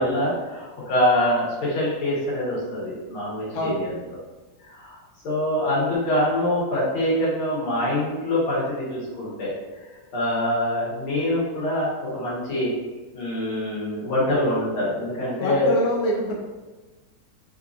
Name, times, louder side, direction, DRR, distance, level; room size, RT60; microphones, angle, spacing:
voice 1, 0.0-3.9 4.6-5.0 5.2-9.5 10.1-12.7 13.1-15.9, left 1 dB, 85° left, -7 dB, 2.2 m, -24 dB
voice 2, 15.4-16.3, equal, 65° left, -1 dB, 1.0 m, -25 dB
4.5 x 2.5 x 2.5 m, 1.2 s
omnidirectional pair, 2.3 m